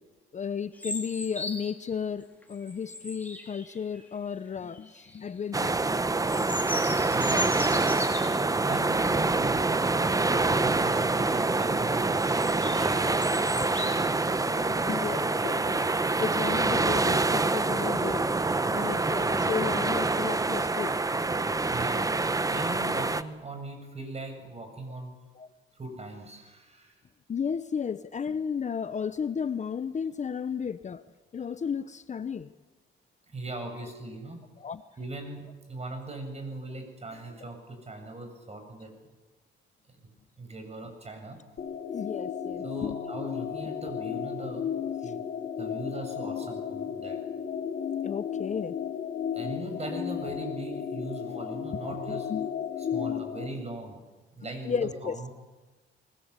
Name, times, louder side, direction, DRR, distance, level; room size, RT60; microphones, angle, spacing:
voice 1, 0.3-6.0 13.3-13.6 14.3-15.9 16.2-18.2 18.7-21.0 25.4-25.5 27.3-31.0 31.3-32.5 34.6-34.8 41.9-43.0 45.0-45.1 48.0-48.7 52.1-52.5 54.6-55.2, left 6 dB, 35° left, 13 dB, 0.8 m, -33 dB
sound 1, 0.8-1.9 2.4-4.0 4.7-5.2 5.6-8.5 9.0-9.2 9.6-9.7 10.1-10.4 11.0-11.6 12.1-14.0, left 2 dB, 10° left, 4.3 m, -38 dB
sound 2, 5.5-23.2, right 3 dB, 15° right, 0.9 m, -26 dB
voice 2, 7.1-7.6 8.6-13.5 21.7-22.1 22.5-25.2 25.8-26.9 33.3-34.4 35.0-38.9 40.4-41.4 42.6-44.7 45.0-45.2 45.6-47.2 49.3-52.3 52.8-54.0 54.3-55.3, right 2 dB, 30° right, 5 dB, 7.4 m, -39 dB
sound 3, 41.6-53.5, left 8 dB, 60° left, 4.0 m, -34 dB
24.0 x 20.5 x 8.2 m, 1.2 s
cardioid pair, 90°, 20 cm